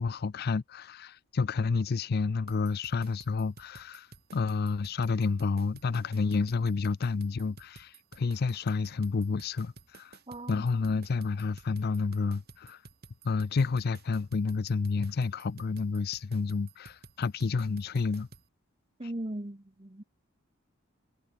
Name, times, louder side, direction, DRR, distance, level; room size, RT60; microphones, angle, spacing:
voice 1, 0.0-4.1 4.3-10.2 10.5-12.8 13.2-18.3, left 4 dB, 50° left, 0.4 m, -30 dB
sound 1, 2.5-18.5, right 3 dB, 50° right, 6.5 m, -53 dB
voice 2, 10.3-10.7 19.0-20.0, right 1 dB, 25° right, 1.2 m, -38 dB
head